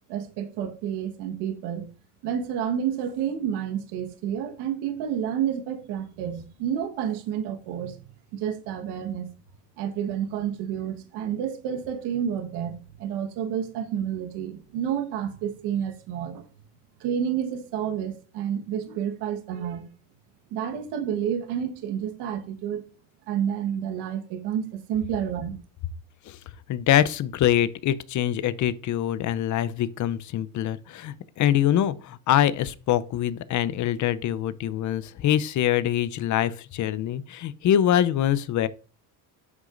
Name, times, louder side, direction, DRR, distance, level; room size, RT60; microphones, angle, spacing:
voice 1, 0.1-1.9 2.2-8.0 8.3-9.3 9.8-16.4 17.0-19.9 20.5-22.8 23.3-25.6, right 9 dB, 75° right, 1.4 m, -30 dB
voice 2, 26.7-38.7, left 11 dB, 45° left, 0.6 m, -24 dB
9.0 x 6.3 x 2.5 m
supercardioid pair, 90°, 40 cm